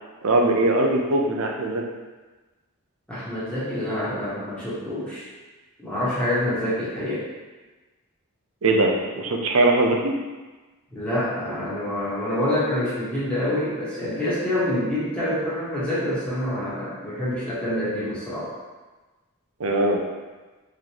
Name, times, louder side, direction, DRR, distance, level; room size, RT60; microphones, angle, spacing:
voice 1, 0.2-1.8 8.6-10.1 19.6-20.0, right 2 dB, 75° right, 1 dB, 0.6 m, -21 dB
voice 2, 3.1-5.3 5.8-7.2 10.9-18.5, left 1 dB, 5° left, -11 dB, 1.1 m, -26 dB
3.9 x 3.2 x 2.9 m, 1.2 s
head